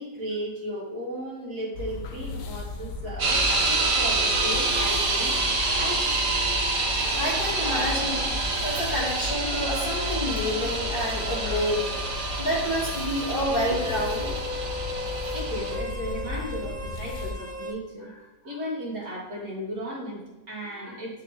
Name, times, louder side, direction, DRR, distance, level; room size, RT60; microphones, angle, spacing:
voice 1, 0.0-5.4 5.8-6.0 15.3-18.1 18.4-21.2, equal, 65° right, -5 dB, 2.6 m, -35 dB
sound 1, 1.7-17.3, left 3 dB, 80° left, 1.3 m, -35 dB
sound 2, 3.2-15.7, right 3 dB, 90° right, 2.0 m, -27 dB
voice 2, 7.1-8.3 8.6-14.4 20.8-20.9, equal, 35° left, -4 dB, 1.1 m, -29 dB
sound 3, 9.7-17.7, left 2 dB, 25° right, 0.9 m, -37 dB
9.7 x 3.9 x 3.0 m, 1.0 s
omnidirectional pair, 1.8 m